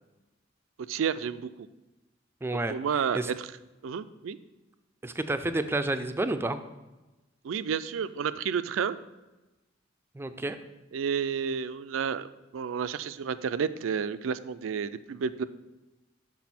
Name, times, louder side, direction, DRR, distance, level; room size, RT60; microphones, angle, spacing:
voice 1, 0.9-1.7 2.7-3.5 3.8-4.4 7.4-9.0 10.9-15.4, right 7 dB, 85° right, 14 dB, 0.4 m, -31 dB
voice 2, 2.4-2.7 3.1-3.3 5.0-6.6 10.1-10.6, right 2 dB, 10° right, 10 dB, 0.3 m, -30 dB
6.2 x 6.0 x 4.2 m, 1.1 s
head